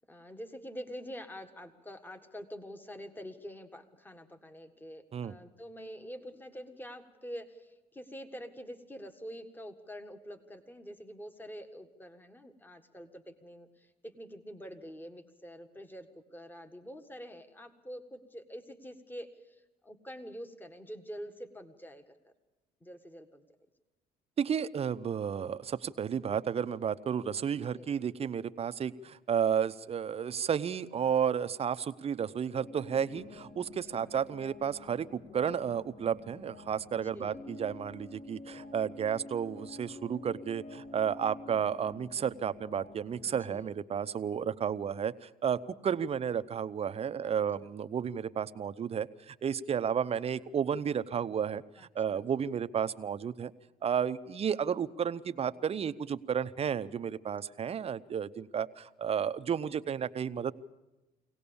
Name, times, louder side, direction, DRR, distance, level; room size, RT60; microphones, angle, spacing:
voice 1, 0.1-22.3 22.8-23.4 27.5-27.9 33.9-34.1 37.1-37.4 43.4-43.8 47.2-47.3 51.8-52.5, equal, 10° left, 8 dB, 1.7 m, -46 dB
voice 2, 24.4-53.5 53.8-60.5, right 8 dB, 35° right, 12 dB, 0.8 m, -32 dB
sound 1, 32.6-43.7, left 2 dB, 45° left, 3.4 m, -49 dB
24.0 x 18.0 x 7.1 m, 1.0 s
cardioid pair, 110°, 17 cm